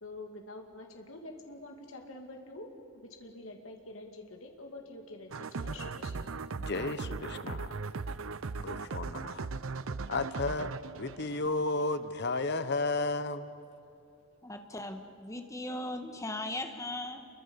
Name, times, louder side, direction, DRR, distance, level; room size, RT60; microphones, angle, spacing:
voice 1, 0.0-6.3, left 2 dB, 70° left, 2 dB, 2.5 m, -47 dB
sound 1, 5.3-12.1, right 4 dB, 70° right, 0.7 m, -38 dB
voice 2, 6.6-7.8 8.6-9.5 10.1-13.5, left 3 dB, 55° left, 12 dB, 1.0 m, -33 dB
voice 3, 14.4-17.3, left 1 dB, 15° left, 5 dB, 1.7 m, -38 dB
29.0 x 23.5 x 7.1 m, 2.7 s
head